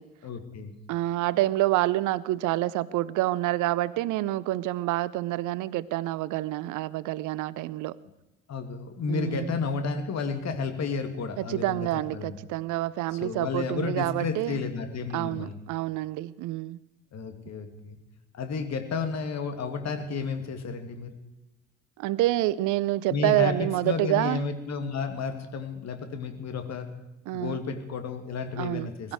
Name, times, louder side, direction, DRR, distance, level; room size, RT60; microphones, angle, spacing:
voice 1, 0.2-0.8 8.5-11.8 12.1-12.3 13.2-15.6 17.1-18.0 18.3-21.1 23.1-26.9 27.3-29.1, left 5 dB, 45° left, 2.5 m, -32 dB
voice 2, 0.9-7.9 9.1-9.5 11.4-14.6 15.1-16.8 22.0-24.4 27.3-27.6 28.6-29.1, right 16 dB, 55° right, 0.7 m, -27 dB
21.5 x 13.0 x 4.8 m
figure-of-eight pair, 55°, 37 cm